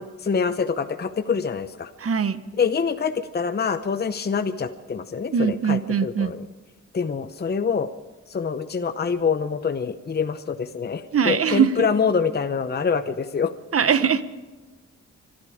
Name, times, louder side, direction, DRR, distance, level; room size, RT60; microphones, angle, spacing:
voice 1, 0.0-1.9 2.6-6.4 6.9-7.9 8.3-13.5, left 6 dB, 35° left, 9 dB, 0.8 m, -25 dB
voice 2, 2.0-2.4 5.3-6.3 11.1-11.9 13.7-14.2, right 7 dB, 50° right, 13 dB, 1.0 m, -21 dB
25.0 x 11.5 x 5.0 m, 1.3 s
cardioid pair, 90°, 30 cm